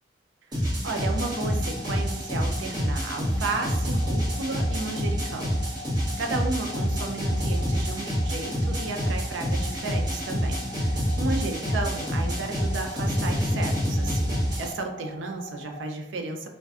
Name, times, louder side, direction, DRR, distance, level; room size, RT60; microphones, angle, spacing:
sound 1, 0.5-14.7, equal, 20° right, 0.7 m, -27 dB
sound 2, 0.8-15.9, left 1 dB, 10° left, 1.0 m, -43 dB
voice 1, 0.8-5.5 6.2-16.5, right 3 dB, 75° right, 3 dB, 0.4 m, -33 dB
2.5 x 2.1 x 2.3 m, 0.95 s
head